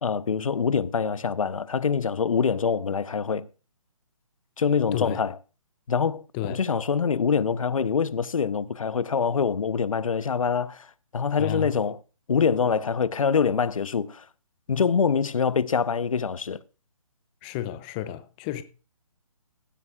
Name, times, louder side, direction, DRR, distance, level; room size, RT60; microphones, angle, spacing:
voice 1, 0.0-3.5 4.6-5.4 5.9-12.0 12.3-14.3 14.7-16.6, left 6 dB, 75° left, 0.8 m, -25 dB
voice 2, 11.4-11.7 17.4-18.6, left 11 dB, 15° left, 0.5 m, -31 dB
16.0 x 12.5 x 2.4 m
hypercardioid pair, 155°, 18 cm